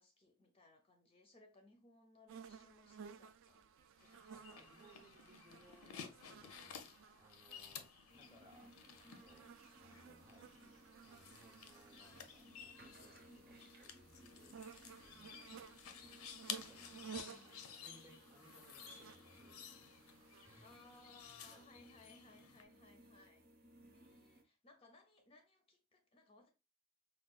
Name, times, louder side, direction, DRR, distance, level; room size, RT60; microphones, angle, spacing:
voice 1, 0.0-3.7 4.0-4.6 8.5-8.7 13.2-13.4 15.2-15.7 17.1-17.6 20.6-26.5, left 2 dB, 25° left, 0.4 m, -65 dB
sound 1, 2.3-21.6, right 6 dB, 60° right, 0.3 m, -57 dB
sound 2, 4.0-22.6, left 7 dB, 90° left, 0.5 m, -54 dB
voice 2, 4.3-15.4 16.0-16.1 16.5-20.7 21.3-22.1, right 1 dB, 10° right, 0.6 m, -67 dB
sound 3, 8.1-24.4, right 1 dB, 45° right, 0.7 m, -64 dB
4.7 x 2.2 x 2.3 m
head